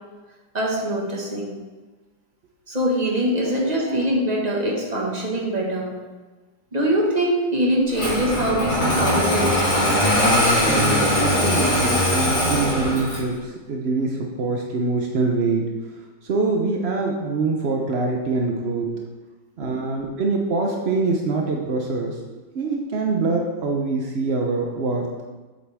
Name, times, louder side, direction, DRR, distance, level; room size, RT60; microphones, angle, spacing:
voice 1, 0.5-1.5 2.7-5.9 6.7-10.0 19.6-19.8, right 1 dB, 20° right, -2 dB, 1.5 m, -23 dB
voice 2, 3.4-4.0 10.7-15.6 16.2-18.9 19.6-25.1, right 3 dB, 65° right, 1 dB, 0.6 m, -24 dB
Engine starting, 7.9-13.3, left 1 dB, 50° left, 3.6 m, -20 dB
8.6 x 7.7 x 3.5 m, 1.3 s
omnidirectional pair, 2.1 m